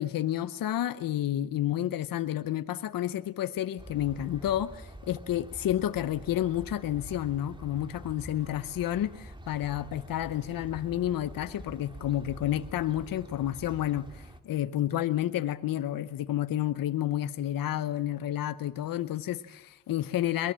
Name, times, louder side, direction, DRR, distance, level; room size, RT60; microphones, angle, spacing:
voice 1, 0.0-20.5, left 12 dB, 85° left, 0.7 m, -30 dB
sound 1, 3.8-14.4, right 1 dB, 15° right, 2.0 m, -46 dB
22.5 x 20.5 x 7.4 m
cardioid pair, 75°, 33 cm